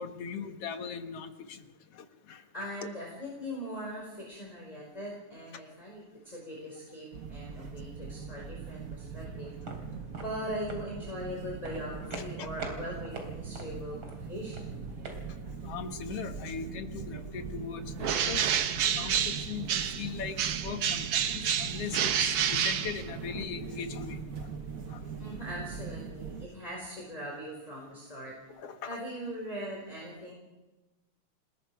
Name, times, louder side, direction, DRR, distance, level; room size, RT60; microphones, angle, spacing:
voice 1, 0.0-1.6 2.3-2.4 2.8-2.9 12.1-12.5 15.6-18.4 18.9-24.2 24.9-25.0 28.6-28.9, left 6 dB, 60° left, 7 dB, 2.3 m, -39 dB
voice 2, 2.5-9.5 10.1-14.0 14.3-15.0 25.2-28.3 28.9-30.3, equal, 10° left, -3 dB, 4.8 m, -40 dB
sound 1, 7.1-26.5, right 5 dB, 90° right, 0.7 m, -41 dB
sound 2, 9.4-15.2, right 2 dB, 45° right, 4.0 m, -44 dB
Bird, 18.0-20.1 20.4-23.4, right 8 dB, 60° right, 2.0 m, -29 dB
28.5 x 20.0 x 4.7 m, 1.1 s
omnidirectional pair, 3.3 m